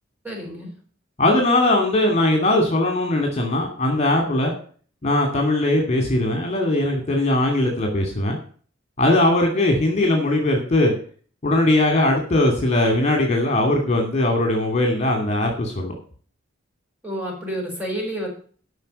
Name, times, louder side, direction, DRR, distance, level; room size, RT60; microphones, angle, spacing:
voice 1, 0.2-0.7 17.0-18.3, equal, 10° right, -1 dB, 6.1 m, -29 dB
voice 2, 1.2-4.5 5.0-8.4 9.0-10.9 11.4-15.9, left 1 dB, 35° left, 3 dB, 2.6 m, -20 dB
13.0 x 6.0 x 6.6 m, 0.43 s
head